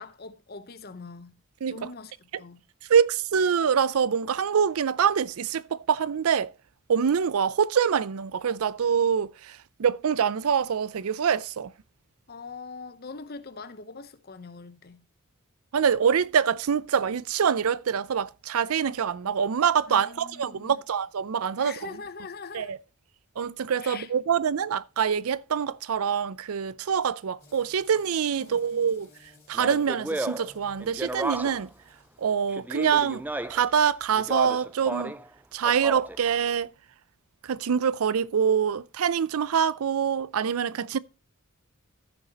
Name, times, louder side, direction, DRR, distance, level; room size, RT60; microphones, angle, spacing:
voice 1, 0.0-1.4 1.7-2.6 12.3-15.0 19.9-20.8 21.6-22.7 23.8-24.1 28.4-28.6, left 4 dB, 45° left, 0.9 m, -42 dB
voice 2, 2.9-6.5 6.9-9.3 9.8-11.7 15.7-21.7 22.5-22.8 23.4-29.1 29.5-31.7 32.2-33.2 33.5-35.1 35.5-36.7 37.4-41.0, right 7 dB, 85° right, 0.5 m, -25 dB
sound 1, 27.4-33.4, left 3 dB, 15° left, 4.7 m, -59 dB
Speech, 29.5-31.7 32.5-33.7 34.2-35.3 35.6-36.3, right 2 dB, 10° right, 0.4 m, -33 dB
14.5 x 6.6 x 2.9 m
head